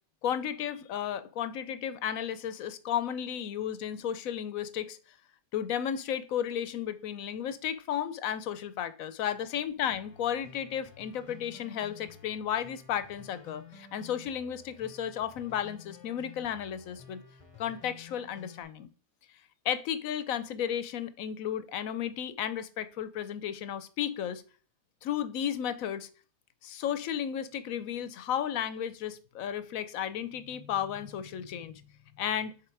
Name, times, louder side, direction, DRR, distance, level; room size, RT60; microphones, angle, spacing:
voice 1, 0.2-5.0 5.5-17.2 17.6-18.9 19.6-24.4 25.0-26.1 26.6-31.7 32.2-32.5, left 9 dB, 75° left, 1.0 m, -33 dB
sound 1, 9.9-18.6, left 7 dB, 30° left, 0.8 m, -52 dB
6.9 x 3.4 x 4.6 m
omnidirectional pair, 1.5 m